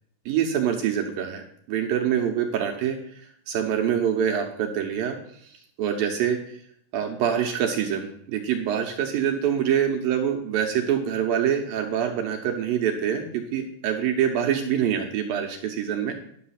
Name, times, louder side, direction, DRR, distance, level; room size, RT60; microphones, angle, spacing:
voice 1, 0.3-1.4 1.7-5.2 5.4-5.5 5.8-6.6 6.9-16.2, right 9 dB, 70° right, 3 dB, 2.4 m, -25 dB
11.0 x 6.7 x 5.8 m, 0.66 s
omnidirectional pair, 4.8 m